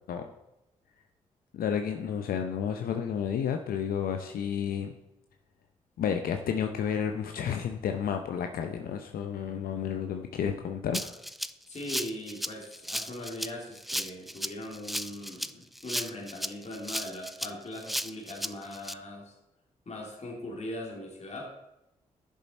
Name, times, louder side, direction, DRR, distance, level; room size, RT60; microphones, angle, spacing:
voice 1, 1.5-4.9 6.0-11.2, left 8 dB, 70° left, 5 dB, 0.7 m, -31 dB
Rattle (instrument), 10.9-18.9, equal, ahead, 0.4 m, -35 dB
voice 2, 11.7-19.3 19.9-21.5, left 1 dB, 45° left, -1 dB, 2.8 m, -40 dB
11.5 x 7.3 x 4.2 m, 0.92 s
hypercardioid pair, 40°, 16 cm